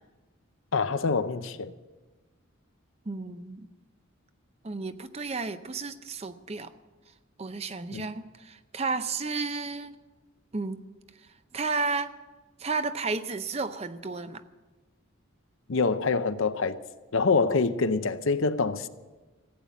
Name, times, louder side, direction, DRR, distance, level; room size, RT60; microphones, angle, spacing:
voice 1, 0.7-1.7 7.9-8.0 15.7-16.8 17.1-18.9, left 4 dB, 70° left, 0.7 m, -25 dB
voice 2, 3.1-3.7 4.6-6.7 7.4-9.9 10.5-10.8 11.5-12.1 12.6-14.4, right 4 dB, 30° right, 0.6 m, -32 dB
15.5 x 9.0 x 8.3 m
head